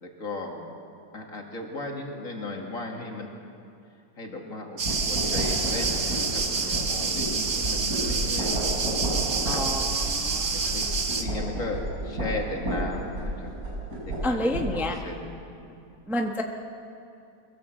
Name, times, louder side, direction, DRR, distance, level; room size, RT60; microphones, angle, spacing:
voice 1, 0.0-0.7 1.1-3.3 4.2-8.8 9.4-9.7 10.5-13.5 14.1-15.8, left 2 dB, 60° left, 1 dB, 2.6 m, -37 dB
sound 1, 4.8-11.2, right 4 dB, 55° right, 1.6 m, -28 dB
sound 2, 4.8-14.9, right 1 dB, 75° right, 6.7 m, -31 dB
voice 2, 9.5-10.5 14.2-14.9 16.1-16.4, left 1 dB, ahead, 2 dB, 1.0 m, -29 dB
22.5 x 16.0 x 7.7 m, 2.6 s
omnidirectional pair, 1.6 m